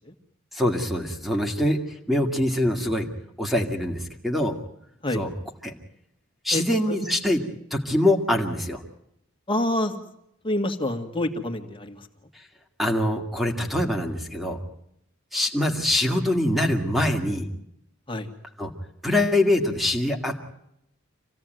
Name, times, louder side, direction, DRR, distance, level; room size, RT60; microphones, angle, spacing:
voice 1, 0.5-3.1 3.4-4.6 5.1-5.3 5.6-5.7 6.4-7.4 7.7-8.8 12.8-14.6 15.3-17.5 18.6-18.7 19.0-20.4, left 1 dB, ahead, 3 dB, 2.3 m, -24 dB
voice 2, 6.5-7.0 9.5-10.0 10.4-12.0 18.1-18.3, left 1 dB, 25° left, 5 dB, 2.2 m, -27 dB
26.5 x 17.0 x 9.3 m, 0.79 s
head